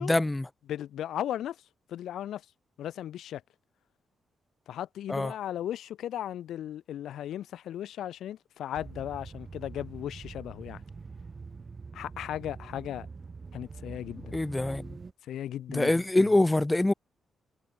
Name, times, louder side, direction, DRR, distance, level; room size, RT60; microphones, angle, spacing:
voice 1, 0.0-0.5 5.1-5.4 14.3-15.0 15.7-16.9, left 2 dB, 10° left, 2.2 m, -25 dB
voice 2, 0.7-1.6 1.9-2.4 2.8-3.4 4.7-10.8 11.9-13.1 13.5-14.4 15.2-15.9, left 11 dB, 85° left, 7.3 m, -36 dB
sound 1, 8.7-15.1, right 4 dB, 30° right, 4.0 m, -44 dB
wide cardioid pair, 145°, 0 cm